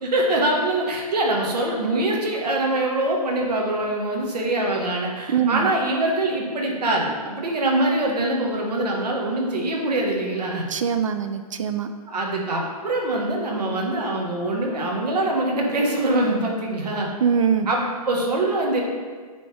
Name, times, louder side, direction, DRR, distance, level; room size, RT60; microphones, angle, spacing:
voice 1, 0.0-10.6 12.1-17.1 17.7-18.8, right 1 dB, 85° right, 0 dB, 1.6 m, -24 dB
voice 2, 5.3-5.7 10.7-11.9 17.2-17.7, right 7 dB, 55° right, 9 dB, 0.4 m, -22 dB
8.9 x 3.5 x 3.4 m, 1.6 s
hypercardioid pair, 165°, 20 cm